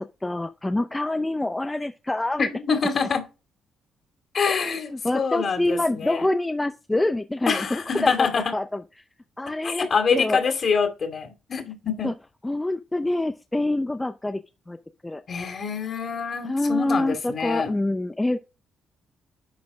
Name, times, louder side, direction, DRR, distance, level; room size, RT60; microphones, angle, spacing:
voice 1, 0.2-2.5 4.5-4.6 4.9-8.8 9.4-10.4 12.0-12.1 12.4-14.4 14.7-14.8 15.0-15.2 16.4-18.4, left 2 dB, 15° left, 0.6 m, -26 dB
voice 2, 2.4-3.2 4.3-6.3 7.5-8.5 9.6-12.1 15.3-17.7, left 5 dB, 45° left, 2.6 m, -25 dB
10.5 x 4.3 x 4.9 m
cardioid pair, 90°, 0 cm